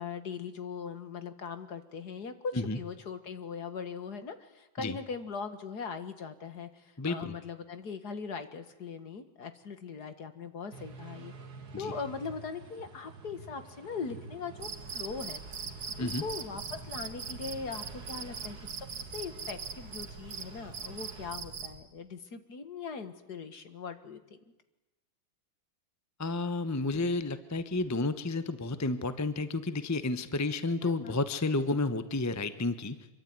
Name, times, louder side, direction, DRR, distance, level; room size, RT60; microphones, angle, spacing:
voice 1, 0.0-11.3 11.8-15.4 15.9-18.9 19.1-24.4 30.8-31.2, left 5 dB, 55° left, 9 dB, 2.2 m, -40 dB
voice 2, 7.0-7.3 11.7-11.9 16.0-16.2 26.2-33.0, left 2 dB, 15° left, 11 dB, 0.6 m, -31 dB
Ambience Urban Outdoor at Plaça Sagrada Familia Sardenya, 10.7-21.3, right 4 dB, 55° right, 2.4 m, -49 dB
Cricket, 14.6-21.8, right 6 dB, 80° right, 2.6 m, -41 dB
26.5 x 23.5 x 9.6 m, 1.0 s
omnidirectional pair, 2.1 m